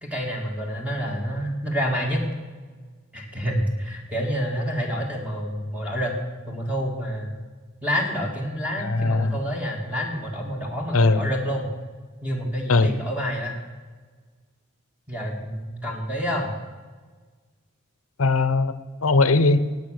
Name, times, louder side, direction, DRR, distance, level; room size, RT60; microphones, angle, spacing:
voice 1, 0.0-2.2 3.1-6.1 6.5-7.3 7.8-11.7 12.2-13.6 15.1-16.5, equal, 5° right, 0 dB, 2.2 m, -28 dB
voice 2, 8.8-9.4 10.9-11.3 12.7-12.9 18.2-18.7 19.0-19.6, left 3 dB, 80° left, 13 dB, 0.9 m, -19 dB
17.5 x 9.0 x 6.5 m, 1.5 s
head